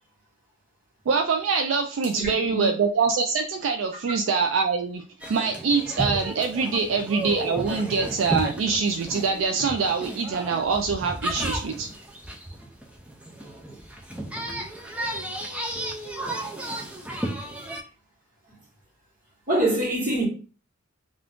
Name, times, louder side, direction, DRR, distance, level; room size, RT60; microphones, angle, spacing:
voice 1, 1.1-5.0 5.3-11.9, right 5 dB, 80° right, 0.3 m, -24 dB
voice 2, 2.2-2.7 19.5-20.3, right 2 dB, 45° right, 1.2 m, -24 dB
sound 1, 5.2-17.8, right 1 dB, 5° right, 0.3 m, -33 dB
2.4 x 2.4 x 3.5 m
head